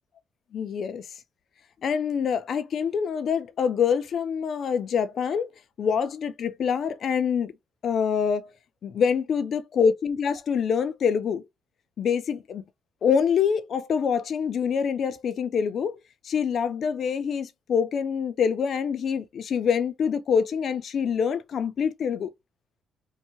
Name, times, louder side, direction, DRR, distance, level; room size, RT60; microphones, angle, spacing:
voice 1, 0.5-1.0 1.8-5.5 5.8-7.5 7.8-8.5 8.8-11.4 12.0-12.6 13.0-16.0 16.2-22.3, left 7 dB, 55° left, 0.4 m, -25 dB
2.7 x 2.1 x 2.8 m
cardioid pair, 125°, 0 cm